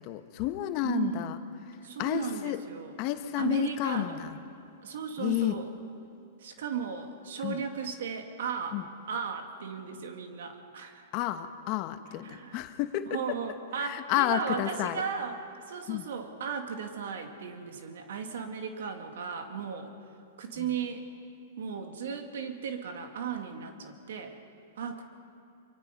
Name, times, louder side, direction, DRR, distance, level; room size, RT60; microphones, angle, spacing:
voice 1, 0.0-1.4 2.0-2.6 3.0-4.4 5.2-5.6 7.4-7.6 8.7-8.8 11.1-13.2 13.8-15.0 15.9-16.1 20.6-20.7, left 14 dB, 45° left, 9 dB, 1.2 m, -31 dB
voice 2, 0.8-1.4 1.8-2.9 3.4-4.2 4.8-5.7 6.4-8.8 9.1-11.1 12.2-12.6 13.1-15.4 15.7-19.9 20.4-21.0 21.6-24.4 24.8-25.0, right 6 dB, 75° right, 5 dB, 2.3 m, -35 dB
24.5 x 24.0 x 5.4 m, 2.6 s
hypercardioid pair, 130°, 0 cm